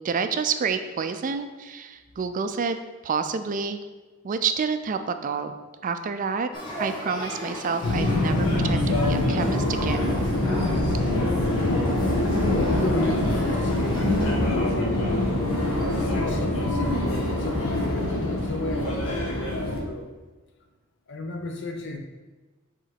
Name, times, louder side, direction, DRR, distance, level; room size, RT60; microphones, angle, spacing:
voice 1, 0.0-2.8 3.0-3.8 4.2-5.6 5.8-6.5 6.8-10.2, right 5 dB, 40° right, 9 dB, 0.4 m, -28 dB
Male speech man speaking / Child speech kid speaking / Conversation, 6.5-14.3, equal, 20° left, 1.5 m, -37 dB
Subway metro underground, 7.8-19.8, left 1 dB, 90° left, 1.4 m, -24 dB
voice 2, 12.4-15.1 15.9-20.1 21.1-22.0, left 1 dB, 60° left, 4 dB, 0.8 m, -34 dB
5.1 x 3.8 x 5.8 m, 1.3 s
head